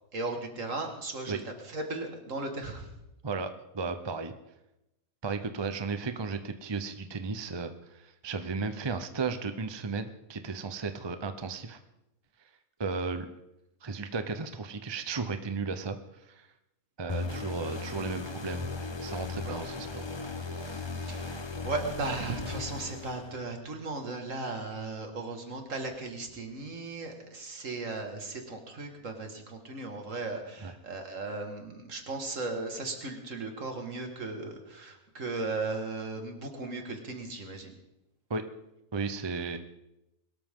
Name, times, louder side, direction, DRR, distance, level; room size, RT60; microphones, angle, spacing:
voice 1, 0.1-2.9 19.4-19.6 20.4-37.7, right 3 dB, 60° right, 4 dB, 2.3 m, -37 dB
voice 2, 3.2-4.3 5.2-11.8 12.4-12.5 12.8-13.3 13.8-16.5 17.0-18.7 19.0-20.2 30.6-30.7 38.3-38.4 38.9-39.6, right 4 dB, 25° right, 9 dB, 0.6 m, -35 dB
sound 1, 17.1-23.6, left 3 dB, 25° left, 0.7 m, -37 dB
22.5 x 13.0 x 3.7 m, 0.90 s
omnidirectional pair, 1.5 m